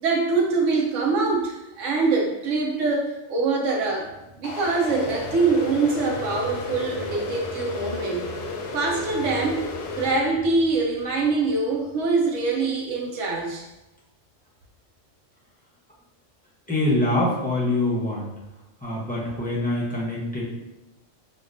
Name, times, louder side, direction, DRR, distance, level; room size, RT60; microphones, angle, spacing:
voice 1, 0.0-4.1 4.4-8.2 8.7-9.6 9.9-13.6, right 3 dB, 80° right, -1 dB, 1.0 m, -24 dB
sound 1, 3.9-12.9 13.4-13.5, left 1 dB, 60° right, 0.7 m, -42 dB
sound 2, 4.4-10.1, left 3 dB, 65° left, 0.7 m, -33 dB
voice 2, 16.7-18.3 18.8-20.4, left 1 dB, 10° left, -7 dB, 0.5 m, -24 dB
4.8 x 2.3 x 2.5 m, 0.95 s
omnidirectional pair, 1.3 m